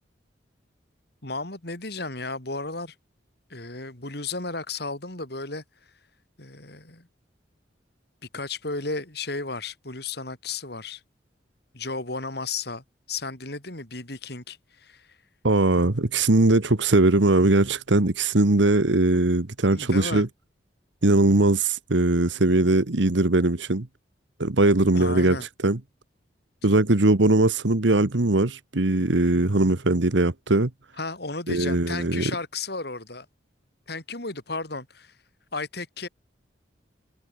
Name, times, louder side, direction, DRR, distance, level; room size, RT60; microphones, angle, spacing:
voice 1, 1.2-2.9 3.5-5.6 6.4-7.1 8.3-11.0 11.7-15.1 19.7-20.2 24.6-25.5 26.6-26.9 31.0-33.3 33.9-35.2 35.5-36.1, left 3 dB, 60° left, 4.4 m, -34 dB
voice 2, 15.4-20.3 21.0-23.9 24.4-25.8 26.6-30.7 31.5-32.3, right 2 dB, 75° right, 1.4 m, -20 dB
head